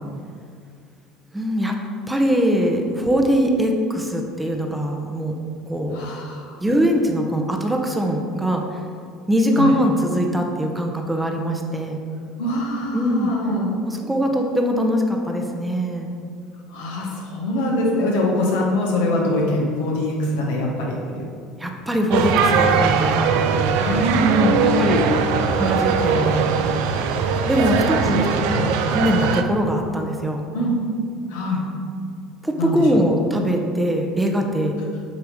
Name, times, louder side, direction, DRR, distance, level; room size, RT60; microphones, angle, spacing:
voice 1, 1.3-1.7 2.1-5.3 5.7-6.0 6.6-8.8 9.3-12.0 12.9-13.3 13.9-16.1 21.6-25.0 25.6-26.5 27.5-28.2 28.5-30.4 32.4-34.7, equal, 10° right, 2 dB, 0.8 m, -22 dB
voice 2, 5.9-6.6 9.6-9.8 12.4-13.7 16.7-21.3 23.8-25.3 28.0-28.7 30.5-30.7 31.3-31.6 32.6-32.8, left 1 dB, 80° left, -2 dB, 1.5 m, -23 dB
sound 1, 22.1-29.4, right 6 dB, 75° right, 0.5 m, -21 dB
8.2 x 3.3 x 5.1 m, 2.3 s
supercardioid pair, 90°, 0 cm